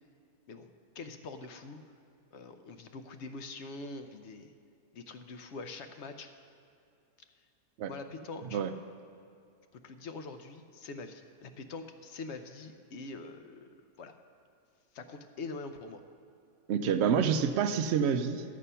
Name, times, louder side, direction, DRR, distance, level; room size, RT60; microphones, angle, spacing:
voice 1, 0.9-1.8 2.3-4.5 4.9-6.3 7.9-8.6 9.7-13.7 14.0-14.2 14.9-16.0, left 3 dB, 60° left, 8 dB, 0.7 m, -44 dB
voice 2, 16.7-18.4, right 7 dB, 70° right, 9 dB, 0.6 m, -27 dB
13.5 x 7.5 x 5.5 m, 2.5 s
omnidirectional pair, 1.7 m